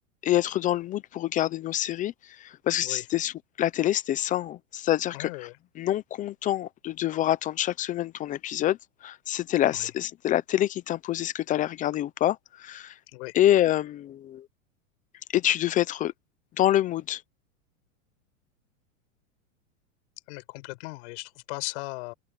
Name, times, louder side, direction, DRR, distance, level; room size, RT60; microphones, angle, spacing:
voice 1, 0.2-5.3 5.8-12.9 13.3-14.5 15.3-16.1 16.6-17.2, left 13 dB, 20° left, 0.5 m, -26 dB
voice 2, 5.1-5.6 9.7-9.9 13.1-13.3 20.3-22.1, left 26 dB, 55° left, 5.5 m, -37 dB
open air
supercardioid pair, 140°, 40 cm